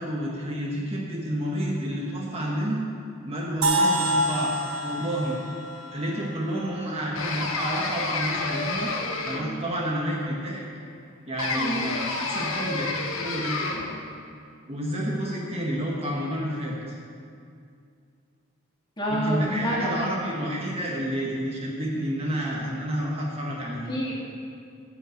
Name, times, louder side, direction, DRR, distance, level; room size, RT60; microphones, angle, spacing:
voice 1, 0.0-2.8 3.2-4.5 4.8-5.4 5.9-8.9 9.2-10.6 11.3-12.9 13.2-13.6 14.7-16.9 19.1-23.9, equal, 30° right, -3 dB, 1.4 m, -30 dB
sound 1, 3.6-7.5, right 1 dB, 75° right, 1.4 m, -27 dB
sound 2, 7.2-9.7 11.4-14.0, left 3 dB, 70° left, 1.2 m, -30 dB
voice 2, 19.0-20.0 23.9-24.1, equal, 20° left, -6 dB, 2.6 m, -27 dB
13.5 x 5.6 x 7.7 m, 2.4 s
head